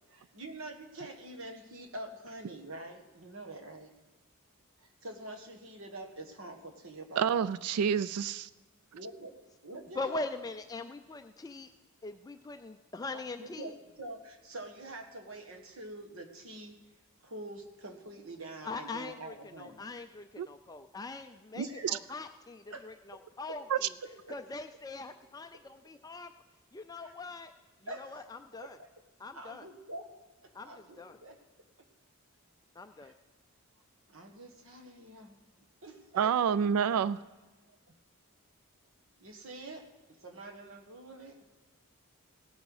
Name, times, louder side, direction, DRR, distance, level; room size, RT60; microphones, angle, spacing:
voice 1, 0.1-3.9 4.8-7.4 8.9-9.4 9.6-10.2 13.1-16.8 17.2-19.8 21.6-22.0 22.7-22.8 23.1-23.2 23.5-23.6 24.0-24.4 25.5-25.6 27.0-27.1 27.9-28.9 29.3-30.1 30.4-31.4 33.0-33.1 34.1-35.4 35.8-36.3 39.2-39.9 40.2-41.4, right 2 dB, 65° right, 5 dB, 1.5 m, -46 dB
voice 2, 7.2-8.5 20.4-20.5 21.6-21.7 23.7-23.8 36.1-37.2, right 7 dB, 85° right, 17 dB, 0.3 m, -28 dB
voice 3, 10.0-11.7 12.0-13.7 18.6-23.9 24.3-26.3 26.7-27.5 28.0-28.8 29.2-29.7 30.5-31.2 32.8-33.1, left 3 dB, 15° left, 7 dB, 0.3 m, -42 dB
17.5 x 9.1 x 4.8 m, 1.2 s
head